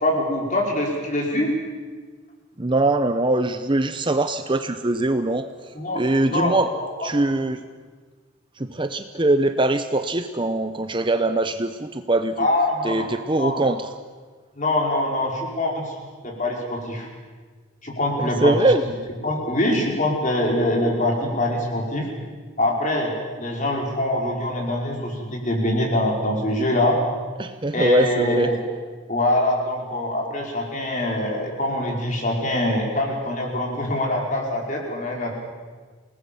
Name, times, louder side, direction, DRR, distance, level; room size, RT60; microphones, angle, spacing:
voice 1, 0.0-1.5 5.7-6.0 6.3-7.1 12.4-13.1 13.3-13.6 14.5-15.9 16.2-17.1 17.8-18.7 19.2-22.1 22.6-27.0 27.7-28.6 29.1-35.3, left 1 dB, 35° left, -1 dB, 5.0 m, -24 dB
voice 2, 2.6-5.5 5.9-6.7 7.0-7.6 8.6-12.5 12.8-13.9 18.2-18.8 27.4-28.5, right 2 dB, 20° right, 9 dB, 0.7 m, -22 dB
28.5 x 19.0 x 7.1 m, 1.5 s
head